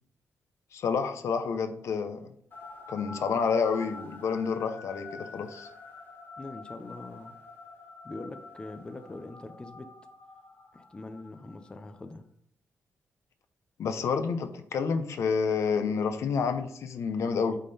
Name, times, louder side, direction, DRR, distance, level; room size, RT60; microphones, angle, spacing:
voice 1, 0.7-2.3 2.9-5.7 13.8-17.6, left 5 dB, 70° left, 9 dB, 0.6 m, -29 dB
sound 1, 2.5-12.0, left 3 dB, 40° left, 1.7 m, -47 dB
voice 2, 6.4-7.4 8.0-9.9 10.7-12.3, left 2 dB, 15° left, 8 dB, 0.5 m, -43 dB
8.4 x 3.7 x 4.1 m, 0.66 s
wide cardioid pair, 150°, 5 cm